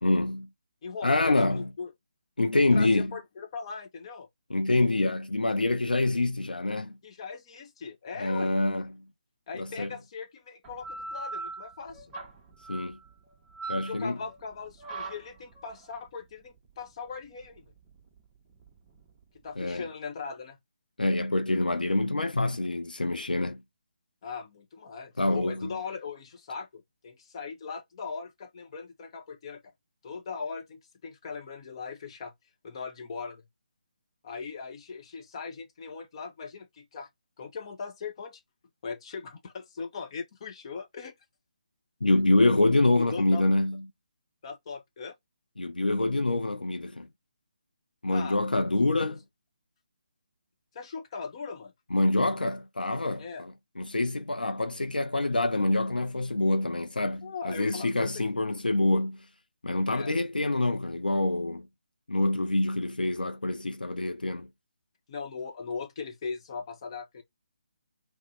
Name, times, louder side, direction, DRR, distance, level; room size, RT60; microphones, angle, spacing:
voice 1, 0.0-0.5 1.0-1.6 2.4-3.1 4.5-7.0 8.2-9.0 9.6-9.9 12.7-13.0 13.7-14.2 19.6-19.8 21.0-23.6 25.2-25.7 42.0-43.8 45.6-47.1 48.0-49.2 51.9-59.2 59.6-61.7 62.1-64.5, left 2 dB, 85° left, 0.4 m, -26 dB
voice 2, 0.8-1.9 2.7-4.3 7.0-8.5 9.5-12.1 13.8-17.7 19.4-20.6 24.2-29.6 30.0-32.3 32.6-33.4 34.2-37.1 37.4-38.4 38.8-41.1 43.0-43.4 44.4-45.1 48.1-48.4 49.0-49.1 50.7-51.7 53.2-53.4 57.2-58.3 59.9-60.1 65.1-67.2, left 5 dB, 35° left, 0.8 m, -39 dB
sound 1, 10.6-19.8, right 3 dB, 15° right, 0.7 m, -42 dB
2.6 x 2.1 x 3.8 m
figure-of-eight pair, 145°, 5 cm